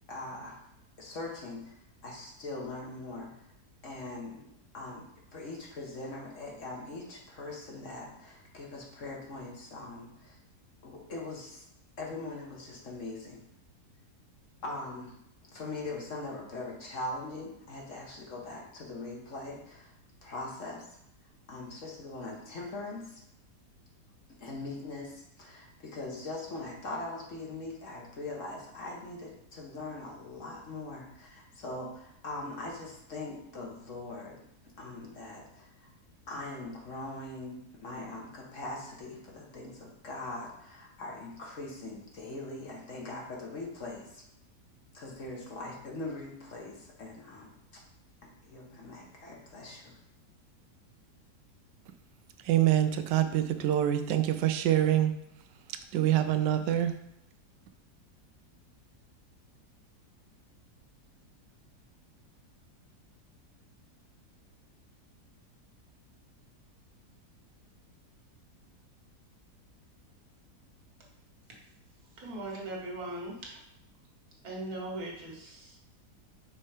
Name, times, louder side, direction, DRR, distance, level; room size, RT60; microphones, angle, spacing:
voice 1, 0.1-0.6 1.0-1.7 2.0-3.5 3.8-5.1 5.3-10.4 10.8-11.6 12.0-13.4 14.6-15.2 15.5-19.9 20.2-21.0 21.5-23.2 24.3-34.4 34.8-35.9 36.3-44.2 44.9-47.5 48.4-50.0, left 2 dB, 50° left, -2 dB, 1.5 m, -41 dB
voice 2, 52.5-55.1 55.9-56.9, right 12 dB, 90° right, 9 dB, 1.2 m, -25 dB
voice 3, 72.2-73.6 74.4-75.8, right 1 dB, 60° right, -1 dB, 1.9 m, -39 dB
5.6 x 4.3 x 4.9 m, 0.78 s
omnidirectional pair, 1.8 m